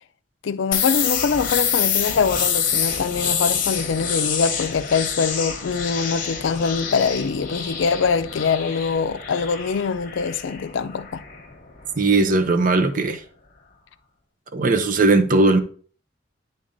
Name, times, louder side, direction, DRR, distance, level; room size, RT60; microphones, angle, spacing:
voice 1, 0.4-11.2, left 5 dB, 80° left, 0.4 m, -23 dB
sound 1, 0.7-12.3, left 7 dB, 45° left, 1.1 m, -27 dB
voice 2, 12.0-13.2 14.5-15.6, right 3 dB, 45° right, 0.6 m, -18 dB
10.0 x 3.8 x 2.6 m
head